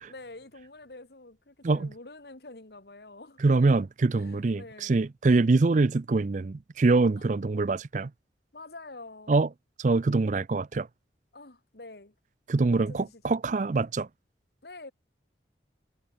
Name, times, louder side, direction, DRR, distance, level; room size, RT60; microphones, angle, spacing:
voice 1, 0.1-3.7 4.1-5.0 7.2-7.3 8.5-9.4 11.3-12.1 12.9-13.3 14.6-14.9, left 2 dB, 65° left, 1.8 m, -47 dB
voice 2, 3.4-8.1 9.3-9.5 9.8-10.9 12.5-14.1, right 3 dB, 45° right, 0.4 m, -24 dB
head